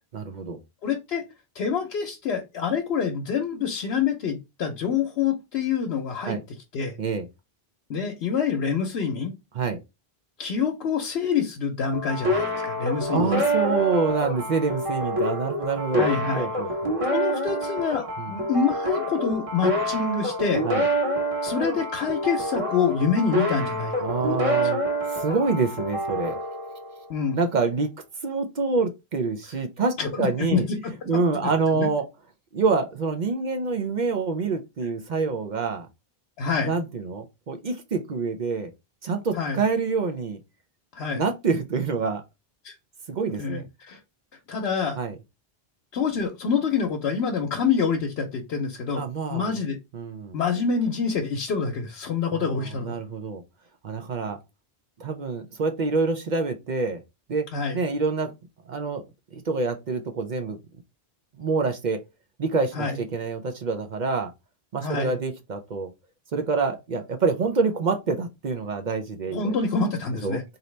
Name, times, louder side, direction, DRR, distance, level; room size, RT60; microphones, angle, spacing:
voice 1, 0.1-0.6 6.2-6.4 7.0-7.3 9.5-9.8 13.1-17.0 18.2-18.4 20.6-20.8 24.0-24.8 25.1-26.4 27.3-27.9 28.2-30.7 31.1-32.0 32.5-35.9 36.6-38.7 39.0-40.4 41.1-42.2 43.1-43.6 45.0-45.2 48.9-49.5 49.9-50.4 52.3-53.4 53.8-54.4 55.0-57.0 57.3-57.4 57.7-58.3 58.7-59.0 59.3-60.6 61.4-62.0 62.4-64.3 64.7-65.9 66.3-69.6 70.2-70.4, right 4 dB, 55° right, 0.6 m, -26 dB
voice 2, 0.8-1.2 1.5-6.4 6.7-7.0 7.9-9.3 10.4-13.3 16.0-16.5 17.1-20.6 21.4-23.9 24.2-24.4 27.1-27.4 30.0-31.1 31.7-31.9 36.4-36.7 39.3-39.6 40.9-41.2 42.6-42.7 43.4-44.0 44.5-45.0 45.9-49.0 49.3-49.8 50.3-53.0 57.5-57.8 62.7-63.0 64.8-65.1 69.3-70.4, left 6 dB, 85° left, 1.0 m, -26 dB
sound 1, 11.9-27.3, equal, 35° right, 1.2 m, -27 dB
3.9 x 2.8 x 3.1 m
omnidirectional pair, 1.0 m